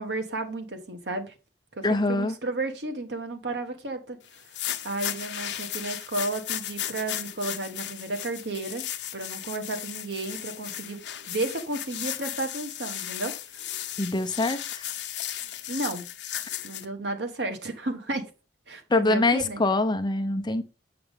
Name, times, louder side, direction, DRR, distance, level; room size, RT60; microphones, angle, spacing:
voice 1, 0.0-1.3 1.7-4.2 4.6-8.8 9.1-11.0 11.3-13.3 15.7-16.1 16.6-18.2 18.7-19.6, right 2 dB, 70° right, 1.3 m, -33 dB
voice 2, 1.8-2.4 14.0-14.9 18.9-20.6, left 2 dB, 25° left, 0.7 m, -24 dB
sound 1, 4.3-16.8, left 12 dB, 75° left, 0.8 m, -35 dB
7.7 x 5.9 x 3.5 m
head